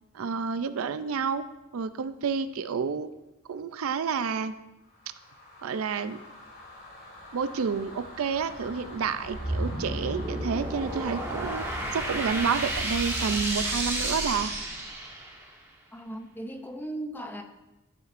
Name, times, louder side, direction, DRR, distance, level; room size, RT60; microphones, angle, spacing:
voice 1, 0.1-1.5 1.7-3.1 3.5-4.5 5.6-6.2 7.3-14.5, right 6 dB, 70° right, 12 dB, 0.4 m, -30 dB
sound 1, 4.9-14.7, left 1 dB, 45° left, 2.1 m, -43 dB
sound 2, 9.2-15.5, right 1 dB, 10° right, 1.2 m, -32 dB
voice 2, 15.9-17.4, right 1 dB, 10° left, 6 dB, 0.5 m, -37 dB
11.5 x 7.0 x 2.5 m, 1.0 s
head